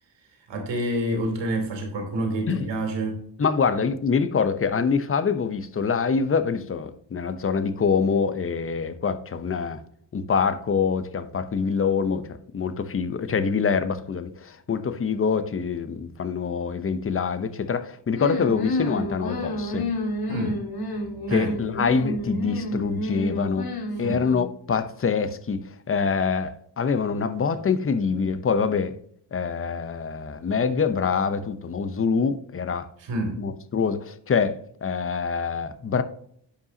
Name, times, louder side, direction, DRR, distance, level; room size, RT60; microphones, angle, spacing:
voice 1, 0.5-3.2 20.3-20.6 21.3-21.6 24.0-24.2 33.0-33.4, right 1 dB, 70° right, 3.0 m, -28 dB
voice 2, 3.4-9.8 10.1-19.9 21.3-23.7 24.0-28.9 29.3-32.9 33.4-36.0, left 5 dB, 30° left, 0.8 m, -25 dB
cute munching, 18.1-24.5, left 1 dB, 55° left, 1.9 m, -30 dB
10.0 x 5.6 x 2.8 m
cardioid pair, 90°, 46 cm